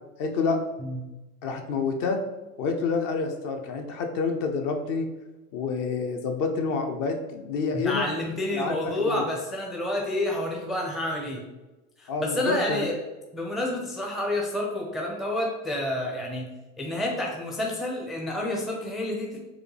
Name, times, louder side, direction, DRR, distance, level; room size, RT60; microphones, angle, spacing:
voice 1, 0.2-0.6 1.4-2.2 2.6-5.1 5.5-8.1 8.5-9.2 12.1-12.9, left 4 dB, 45° left, 5 dB, 0.6 m, -28 dB
voice 2, 7.7-11.5 12.0-12.9 13.3-16.5 16.8-19.4, left 1 dB, ahead, -1 dB, 0.4 m, -29 dB
4.8 x 2.2 x 3.2 m, 1.1 s
hypercardioid pair, 95°, 45 cm